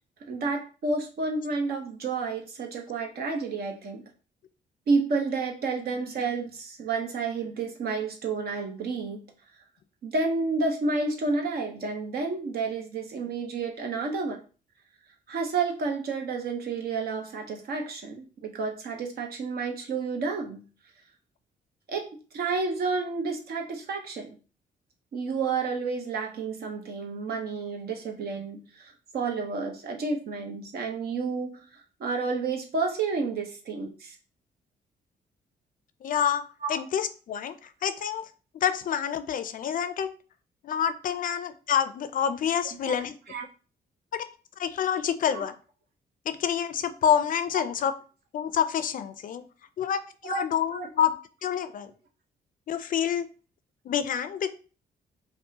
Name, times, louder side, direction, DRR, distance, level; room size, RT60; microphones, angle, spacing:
voice 1, 0.3-4.0 4.9-9.2 10.0-14.4 15.3-20.6 21.9-22.0 22.3-24.4 25.1-31.6 32.0-34.2 36.6-36.7 42.8-42.9 43.3-43.5 45.2-45.4 50.2-50.4 50.7-50.9, right 4 dB, 70° right, 2 dB, 0.9 m, -30 dB
voice 2, 36.0-36.4 36.7-38.2 38.5-40.1 40.6-43.2 44.1-44.2 44.6-45.5 46.3-47.9 48.3-49.4 49.8-51.2 51.4-51.9 52.7-53.3 53.9-54.5, left 8 dB, 55° left, 11 dB, 0.4 m, -27 dB
5.2 x 2.1 x 2.8 m, 0.37 s
cardioid pair, 110°, 17 cm